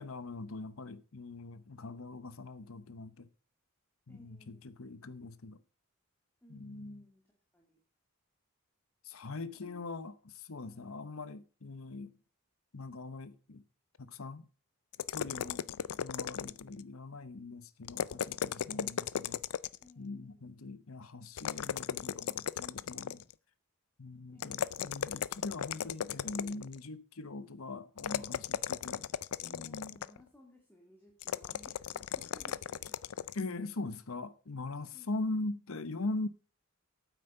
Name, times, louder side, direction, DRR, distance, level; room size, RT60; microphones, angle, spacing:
voice 1, 0.0-3.3 4.1-5.6 6.5-7.0 9.0-12.1 12.7-13.6 14.0-14.4 15.1-15.6 16.0-19.4 20.0-23.2 24.0-29.1 29.4-30.0 33.3-36.3, left 2 dB, 70° left, 0.9 m, -41 dB
voice 2, 4.1-4.7 6.4-7.2 7.5-7.8 9.3-9.8 10.6-10.9 15.4-15.9 19.8-20.5 24.3-24.8 29.5-33.0 34.9-35.1, left 1 dB, 10° left, 2.2 m, -60 dB
sound 1, 14.9-16.8 17.8-19.9 21.4-23.3 24.4-26.8 28.0-30.2 31.2-33.4, left 9 dB, 85° left, 0.5 m, -36 dB
9.2 x 8.1 x 6.6 m
head